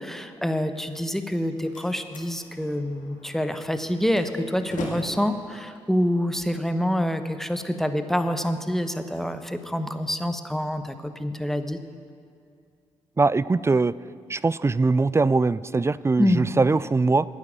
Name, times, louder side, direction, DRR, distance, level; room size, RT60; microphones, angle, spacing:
voice 1, 0.0-11.8 16.2-16.5, equal, ahead, 8 dB, 1.1 m, -26 dB
Slam, 1.2-7.1, left 3 dB, 70° left, 2.1 m, -42 dB
voice 2, 13.2-13.9 14.3-17.3, right 3 dB, 20° right, 19 dB, 0.3 m, -21 dB
9.9 x 9.8 x 7.5 m, 2.4 s
hypercardioid pair, 45°, 14 cm